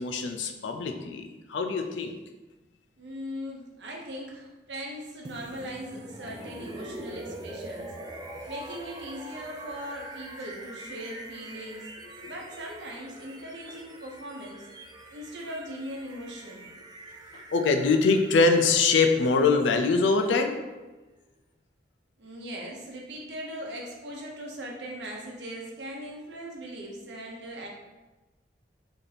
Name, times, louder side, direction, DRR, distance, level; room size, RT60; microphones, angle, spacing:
voice 1, 0.0-2.2 12.2-12.3 17.5-20.6, left 4 dB, 90° left, 5 dB, 0.5 m, -23 dB
voice 2, 3.0-7.9 8.5-11.9 12.2-14.7 15.1-16.7 22.2-27.7, equal, 70° right, -1 dB, 0.8 m, -39 dB
sound 1, 5.2-21.1, right 1 dB, 25° right, 0.4 m, -44 dB
3.4 x 2.8 x 4.0 m, 1.2 s
head